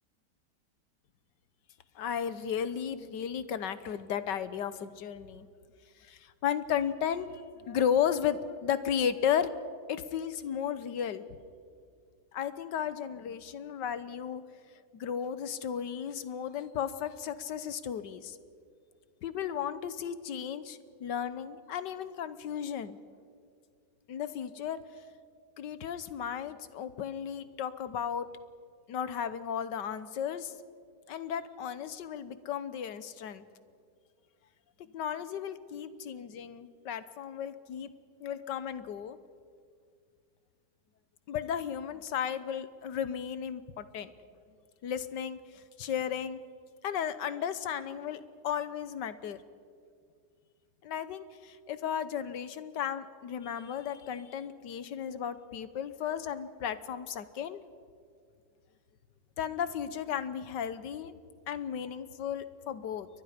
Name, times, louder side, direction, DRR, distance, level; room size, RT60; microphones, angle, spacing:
voice 1, 1.9-5.5 6.0-9.5 9.9-11.2 12.3-14.4 14.9-18.4 19.2-23.0 24.1-24.8 25.6-28.3 28.9-30.5 31.1-33.4 34.9-37.9 38.2-39.2 41.3-44.1 44.8-46.4 46.8-49.4 50.8-57.6 59.4-61.1 61.5-63.1, left 8 dB, 85° left, 13 dB, 1.6 m, -34 dB
30.0 x 22.5 x 5.1 m, 2.2 s
omnidirectional pair, 1.8 m